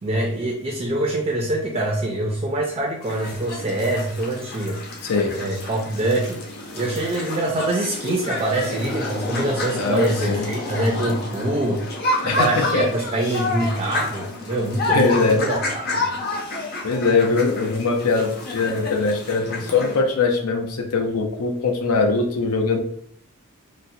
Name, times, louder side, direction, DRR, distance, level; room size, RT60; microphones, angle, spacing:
voice 1, 0.0-4.8 5.3-6.4 6.7-11.8 12.2-16.1, right 1 dB, 30° right, -1 dB, 0.4 m, -24 dB
sound 1, 3.0-20.0, left 2 dB, 45° left, 0.7 m, -29 dB
voice 2, 9.8-10.5 12.3-12.8 14.9-15.5 16.8-22.8, left 4 dB, 85° left, 4 dB, 0.6 m, -21 dB
4.0 x 2.1 x 2.6 m, 0.64 s
head